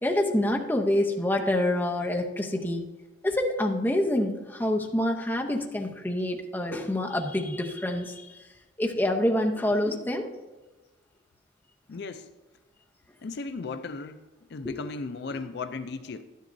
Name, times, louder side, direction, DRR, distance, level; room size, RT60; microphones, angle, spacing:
voice 1, 0.0-2.8 3.2-8.3 8.8-10.3 14.6-14.7, left 1 dB, 10° left, 1 dB, 0.7 m, -26 dB
voice 2, 11.9-12.3 13.2-14.2 14.5-16.2, left 4 dB, 60° left, 10 dB, 0.4 m, -36 dB
11.5 x 10.0 x 2.6 m, 1.2 s
head